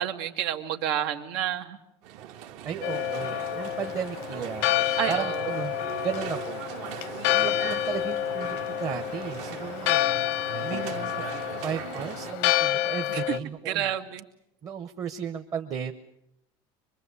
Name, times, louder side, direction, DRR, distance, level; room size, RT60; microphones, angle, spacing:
voice 1, 0.0-1.8 5.0-5.6 13.1-13.2 13.7-14.2, right 10 dB, 90° right, 6 dB, 2.2 m, -29 dB
sound 1, 2.0-12.3, right 10 dB, 65° right, 1.6 m, -39 dB
voice 2, 2.6-4.7 5.1-5.8 6.0-6.6 7.3-10.0 10.6-11.3 11.6-13.9 14.6-15.9, right 7 dB, 30° right, 5 dB, 1.0 m, -34 dB
Church bell, 2.8-13.4, left 13 dB, 85° left, 0.9 m, -29 dB
25.0 x 22.0 x 8.2 m, 0.77 s
cardioid pair, 175°, 12 cm